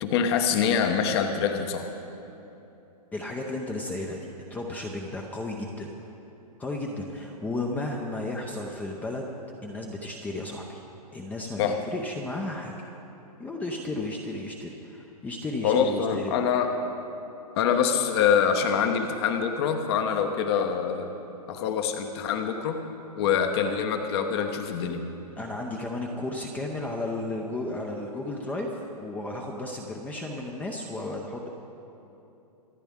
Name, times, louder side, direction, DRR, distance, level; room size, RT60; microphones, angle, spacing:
voice 1, 0.0-1.9 11.6-11.8 15.6-16.7 17.6-21.1 21.5-22.8 23.2-25.0, left 7 dB, 40° left, 6 dB, 1.0 m, -25 dB
voice 2, 3.1-5.9 6.6-9.3 9.6-10.8 11.1-12.7 13.4-16.5 25.4-31.5, left 2 dB, 5° left, 1 dB, 0.6 m, -34 dB
26.0 x 9.0 x 3.6 m, 2.9 s
hypercardioid pair, 145°, 20 cm